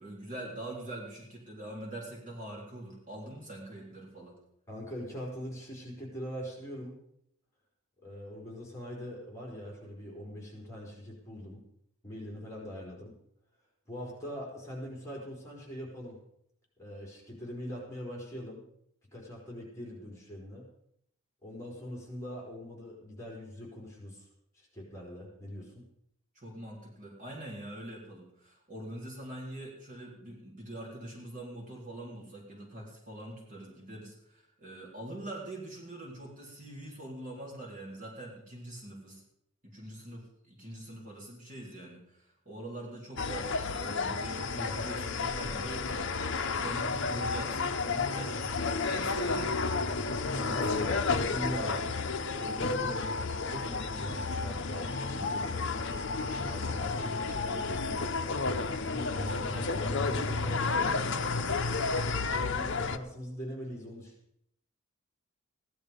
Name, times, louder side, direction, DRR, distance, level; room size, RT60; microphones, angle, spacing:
voice 1, 0.0-4.4 26.4-39.2 39.6-46.2 46.6-48.3 48.8-49.5 50.4-51.0, right 1 dB, 35° right, -2 dB, 3.7 m, -43 dB
voice 2, 4.7-7.0 8.0-11.6 12.0-13.1 13.9-16.2 16.8-18.6 19.1-20.7 21.4-24.3 24.5-25.8 49.3-49.5 50.3-51.9 52.3-53.2 53.4-55.6 56.4-58.1 58.8-61.3 62.3-64.1, equal, 15° left, -3 dB, 4.2 m, -42 dB
sound 1, 43.2-63.0, left 4 dB, 55° left, 0.8 m, -31 dB
16.0 x 11.0 x 5.2 m, 0.73 s
head